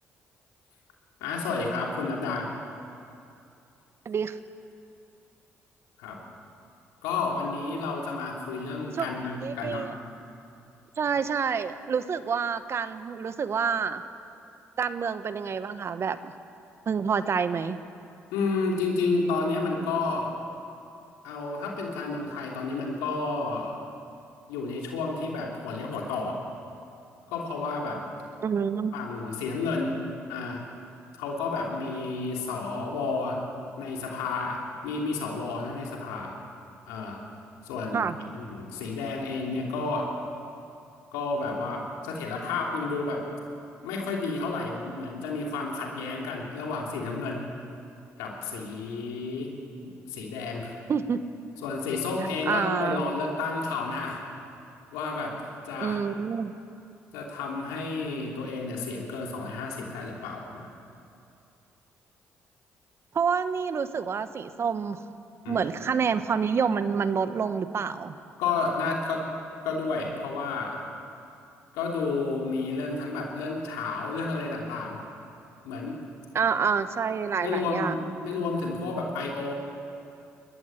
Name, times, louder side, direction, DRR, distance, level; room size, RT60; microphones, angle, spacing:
voice 1, 1.2-2.5 6.0-6.2 7.0-9.9 18.3-20.3 21.2-23.8 24.5-26.4 27.3-28.0 28.9-30.0 30.3-30.6 31.2-33.4 33.8-36.3 36.9-37.2 37.6-40.1 41.1-43.2 43.8-47.5 48.2-49.5 49.8-50.8 51.6-54.2 54.9-56.0 57.1-60.7 65.4-65.6 68.4-69.2 69.6-70.9 71.7-75.0 75.6-76.0 77.4-79.5, left 3 dB, 90° left, -1 dB, 3.0 m, -31 dB
voice 2, 4.0-4.4 8.9-9.1 9.4-9.9 11.0-14.0 14.8-16.3 16.9-17.8 28.4-28.9 37.9-38.2 50.9-51.2 52.5-53.0 55.8-56.5 63.1-65.0 65.5-68.1 76.3-78.0, right 6 dB, 50° right, 11 dB, 1.1 m, -28 dB
21.0 x 14.5 x 9.9 m, 2.5 s
supercardioid pair, 60°, 6 cm